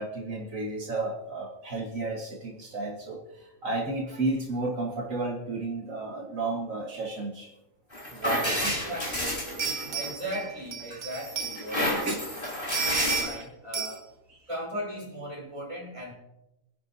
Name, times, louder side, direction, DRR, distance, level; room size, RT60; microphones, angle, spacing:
voice 1, 0.0-7.5 8.1-8.9 9.7-9.8 12.1-12.2 14.3-14.4, right 2 dB, 65° right, 0 dB, 1.8 m, -32 dB
sound 1, 7.9-10.5 10.9-13.2, equal, 35° left, 5.2 m, -30 dB
voice 2, 8.7-9.2 9.9-14.0 14.5-16.1, equal, 20° right, -3 dB, 4.1 m, -38 dB
sound 2, 9.0-9.1 9.6-12.1 12.4-13.4 13.7-14.0, right 6 dB, 85° right, 1.9 m, -33 dB
24.5 x 11.0 x 2.7 m, 0.93 s
omnidirectional pair, 1.5 m